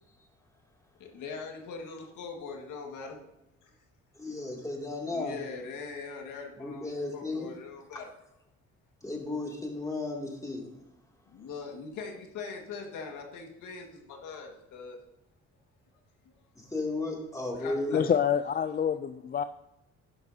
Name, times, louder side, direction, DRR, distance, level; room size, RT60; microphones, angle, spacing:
voice 1, 1.0-3.2 3.6-3.7 5.0-8.1 11.3-15.0 16.3-16.4 17.5-18.0, left 4 dB, 85° left, 2 dB, 1.9 m, -41 dB
voice 2, 4.2-5.4 6.6-7.5 9.0-10.7 16.6-18.1, left 2 dB, 10° left, -1 dB, 2.6 m, -34 dB
voice 3, 17.9-19.4, left 8 dB, 30° left, 11 dB, 0.4 m, -27 dB
11.0 x 11.0 x 2.8 m, 0.86 s
cardioid pair, 90°, 30 cm